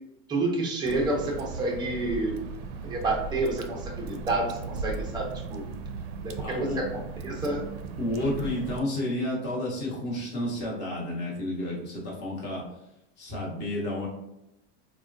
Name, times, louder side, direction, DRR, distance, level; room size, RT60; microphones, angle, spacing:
voice 1, 0.3-2.4 2.8-5.6 6.2-7.6, right 2 dB, 15° right, -1 dB, 0.5 m, -29 dB
Water / Drip, 0.9-8.8, right 4 dB, 65° right, 0.4 m, -37 dB
voice 2, 6.4-6.8 8.0-12.6 13.2-14.1, left 1 dB, 35° left, -4 dB, 1.0 m, -31 dB
3.5 x 2.1 x 2.5 m, 0.86 s
supercardioid pair, 160°, 32 cm